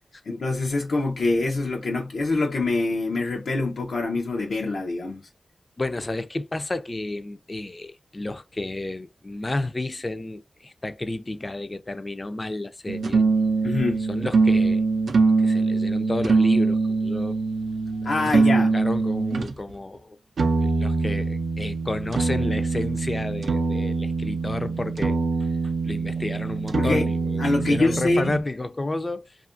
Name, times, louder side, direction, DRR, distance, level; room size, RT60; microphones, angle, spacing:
voice 1, 0.3-5.2 13.6-14.0 18.0-18.7 26.7-27.0 27.4-28.3, left 2 dB, 90° left, 0.5 m, -25 dB
voice 2, 5.8-13.3 14.1-14.8 15.4-17.4 18.0-18.5 18.7-20.2 20.6-25.5 25.8-29.4, left 2 dB, 35° left, 0.3 m, -31 dB
sound 1, 12.9-19.5 20.4-28.4, right 4 dB, 90° right, 0.4 m, -23 dB
2.7 x 2.4 x 2.4 m
cardioid pair, 65°, 0 cm